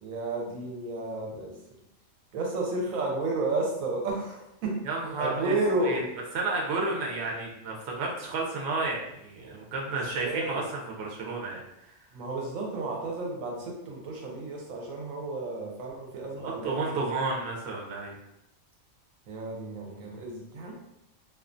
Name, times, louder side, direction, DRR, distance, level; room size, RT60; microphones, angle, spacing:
voice 1, 0.0-1.6 2.3-4.8 5.2-6.0 9.9-10.6 12.1-17.1 19.3-20.7, right 2 dB, 90° right, -1 dB, 1.0 m, -32 dB
voice 2, 4.8-5.6 5.8-6.0 6.3-11.6 16.4-18.2, right 3 dB, 60° right, -2 dB, 0.8 m, -31 dB
2.4 x 2.3 x 2.5 m, 0.83 s
omnidirectional pair, 1.4 m